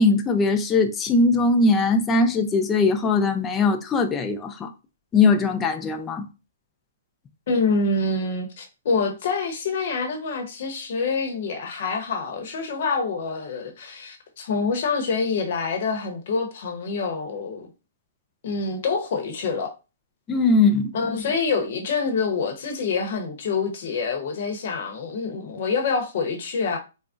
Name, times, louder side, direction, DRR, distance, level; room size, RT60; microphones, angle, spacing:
voice 1, 0.0-4.7 5.1-6.3 20.3-20.9, left 3 dB, 15° left, 0.3 m, -20 dB
voice 2, 7.5-17.7 18.4-19.7 20.9-26.8, left 4 dB, 50° left, 0.8 m, -26 dB
3.5 x 2.0 x 2.4 m
hypercardioid pair, 160°, 0 cm